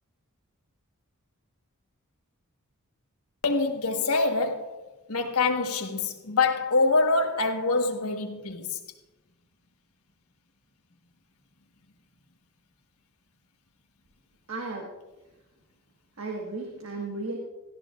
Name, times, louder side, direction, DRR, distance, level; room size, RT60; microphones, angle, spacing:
voice 1, 3.4-4.8 5.1-8.8, left 3 dB, 85° left, 1.4 m, -25 dB
voice 2, 14.5-14.9 16.2-17.4, right 3 dB, 65° right, 1.5 m, -34 dB
17.0 x 13.0 x 2.5 m
head